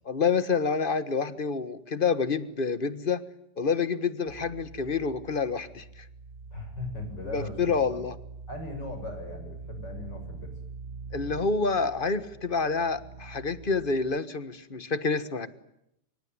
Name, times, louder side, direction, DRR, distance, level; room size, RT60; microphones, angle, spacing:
voice 1, 0.1-3.2 3.6-6.0 7.3-8.1 11.1-15.5, left 5 dB, 30° left, 14 dB, 1.5 m, -28 dB
sound 1, 4.3-14.2, right 4 dB, 40° right, 1.3 m, -44 dB
voice 2, 6.5-8.0 8.5-10.5, left 2 dB, 90° left, 6 dB, 8.2 m, -38 dB
25.5 x 24.0 x 9.6 m, 0.80 s
omnidirectional pair, 1.8 m